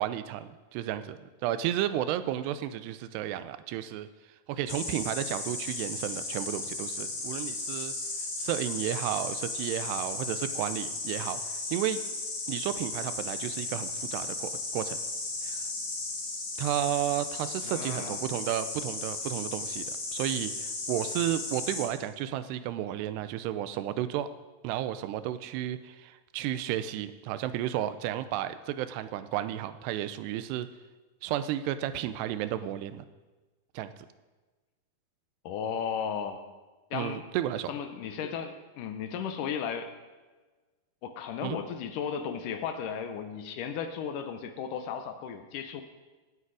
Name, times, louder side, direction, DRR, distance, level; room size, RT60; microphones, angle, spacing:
voice 1, 0.0-4.1 4.5-8.0 8.4-12.0 12.5-15.0 15.4-15.6 16.6-24.3 24.6-30.7 31.2-33.1 33.7-33.9 36.9-37.7 41.4-41.6, right 12 dB, 90° right, 12 dB, 2.8 m, -32 dB
Insect, 4.7-21.8, left 3 dB, 40° left, 3.4 m, -35 dB
voice 2, 17.6-18.2 35.4-36.4 36.9-37.2 37.7-39.9 41.0-45.8, left 7 dB, 75° left, 7 dB, 2.0 m, -35 dB
17.5 x 8.4 x 4.8 m, 1.3 s
omnidirectional pair, 4.7 m